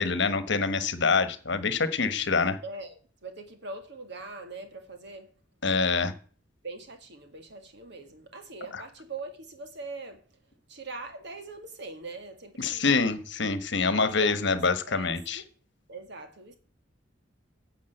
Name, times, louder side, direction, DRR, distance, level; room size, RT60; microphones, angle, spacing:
voice 1, 0.0-2.6 5.6-6.1 8.7-8.8 12.6-15.4, left 4 dB, 65° left, 1.2 m, -26 dB
voice 2, 2.6-5.3 6.6-10.2 10.7-13.1 13.8-14.6 14.9-15.5 15.9-16.6, right 3 dB, 60° right, 2.0 m, -42 dB
10.5 x 7.3 x 7.9 m
head